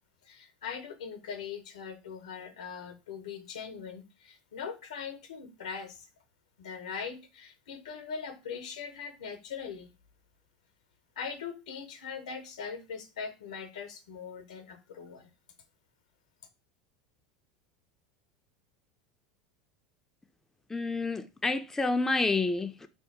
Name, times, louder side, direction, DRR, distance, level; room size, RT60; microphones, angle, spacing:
voice 1, 0.2-6.1 6.6-9.9 11.2-15.3, left 6 dB, 85° left, 0.6 m, -41 dB
voice 2, 20.7-22.9, left 3 dB, 10° left, 0.3 m, -29 dB
2.6 x 2.3 x 3.7 m
hypercardioid pair, 90°, 4 cm